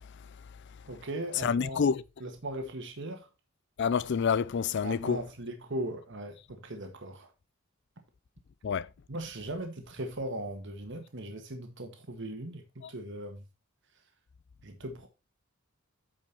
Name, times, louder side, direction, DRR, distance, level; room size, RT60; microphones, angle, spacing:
voice 1, 0.9-1.8 2.2-3.3 4.8-7.3 9.1-13.4 14.6-15.1, right 1 dB, 60° right, 1.6 m, -38 dB
voice 2, 1.4-2.0 3.8-5.2 8.6-8.9 12.8-12.9, left 6 dB, 60° left, 0.4 m, -28 dB
8.9 x 5.4 x 4.3 m
head